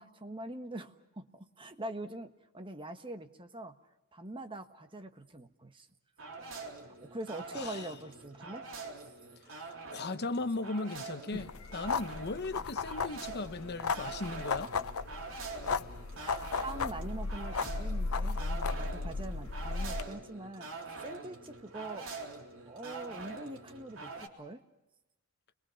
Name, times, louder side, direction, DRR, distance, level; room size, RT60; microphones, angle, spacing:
voice 1, 0.0-3.8 4.1-5.9 6.8-8.6 11.3-11.5 16.2-22.1 22.7-24.6, right 1 dB, 25° right, 1.3 m, -43 dB
sound 1, 6.2-24.3, right 3 dB, 65° right, 3.6 m, -45 dB
voice 2, 7.5-7.9 9.5-14.7, left 3 dB, 50° left, 1.0 m, -37 dB
sound 2, 11.3-20.0, left 4 dB, 80° left, 0.8 m, -35 dB
29.5 x 22.5 x 5.8 m
head